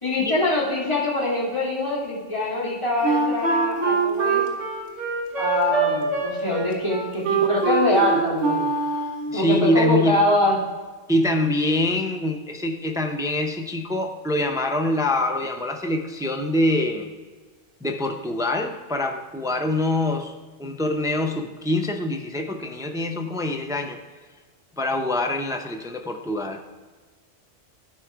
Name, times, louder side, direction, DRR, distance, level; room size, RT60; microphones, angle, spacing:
voice 1, 0.0-4.4 5.3-8.7 9.3-10.5, left 1 dB, 25° left, -7 dB, 2.7 m, -24 dB
Wind instrument woodwind instrument, 3.0-9.3, right 4 dB, 65° right, 1.7 m, -24 dB
voice 2, 9.3-10.2 11.1-17.1 17.8-20.3 20.6-24.0 24.8-26.6, left 1 dB, 5° right, 4 dB, 0.4 m, -24 dB
11.5 x 4.8 x 4.6 m, 1.4 s
omnidirectional pair, 1.3 m